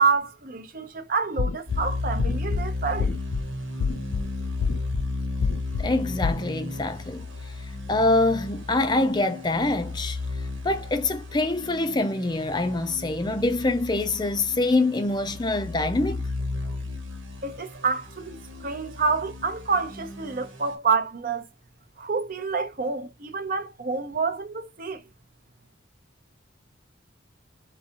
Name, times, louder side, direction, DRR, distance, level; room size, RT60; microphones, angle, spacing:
voice 1, 0.0-3.1 17.4-21.4 22.0-25.0, right 5 dB, 45° right, 0.6 m, -27 dB
sound 1, 1.4-1.8 2.2-2.6 3.0-3.4 3.8-4.2 4.6-5.0 5.4-5.8 6.2-6.4, left 5 dB, 85° left, 0.4 m, -26 dB
sound 2, 1.7-20.7, left 2 dB, 90° right, 1.4 m, -34 dB
voice 2, 5.8-7.3 7.9-10.2 10.6-16.2, left 2 dB, 20° left, 0.5 m, -25 dB
4.6 x 3.4 x 2.8 m
head